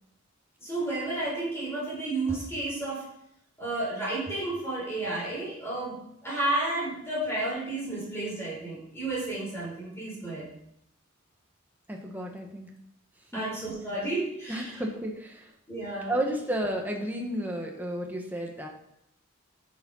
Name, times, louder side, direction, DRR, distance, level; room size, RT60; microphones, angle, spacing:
voice 1, 0.6-3.0 3.6-10.4 13.3-14.8 15.7-16.3, right 2 dB, 15° left, -6 dB, 4.9 m, -32 dB
voice 2, 11.9-12.7 13.3-13.4 14.5-15.4 16.1-18.7, right 1 dB, 10° right, 0 dB, 1.7 m, -32 dB
11.0 x 7.3 x 5.7 m, 0.76 s
head